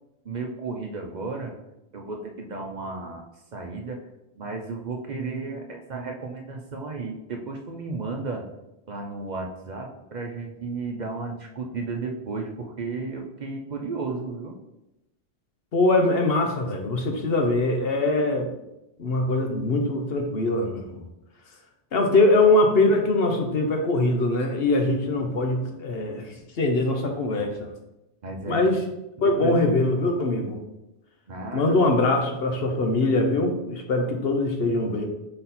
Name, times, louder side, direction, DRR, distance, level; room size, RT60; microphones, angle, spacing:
voice 1, 0.2-1.6 1.9-4.0 4.4-8.5 8.9-14.5 28.2-28.7 29.2-29.7 31.3-31.8, right 3 dB, 50° right, 2 dB, 0.7 m, -33 dB
voice 2, 15.7-18.5 19.0-21.0 21.9-27.7 28.5-28.8 29.2-30.6 31.5-35.1, left 2 dB, 65° left, 3 dB, 1.0 m, -22 dB
5.5 x 4.1 x 4.1 m, 0.91 s
omnidirectional pair, 1.1 m